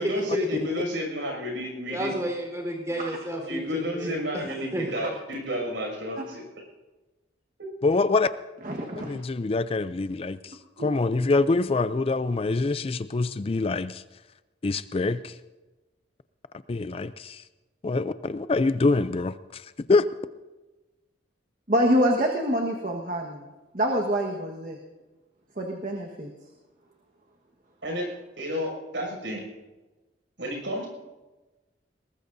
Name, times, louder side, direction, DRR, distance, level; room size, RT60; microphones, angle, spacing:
voice 1, 0.0-2.1 3.4-6.4 27.8-28.1 28.4-29.4 30.4-30.9, equal, 80° right, 1 dB, 6.4 m, -31 dB
voice 2, 1.9-4.4 4.7-5.0, right 1 dB, 15° right, 1 dB, 4.0 m, -31 dB
voice 3, 7.8-8.3 9.0-14.0 14.6-15.3 16.7-17.4 17.8-20.1, left 3 dB, 30° left, 13 dB, 0.4 m, -25 dB
voice 4, 8.6-9.2 10.8-10.9 21.7-23.5 23.7-24.8 25.6-26.3, equal, 45° right, 1 dB, 1.4 m, -26 dB
22.0 x 19.0 x 2.7 m, 1.1 s
head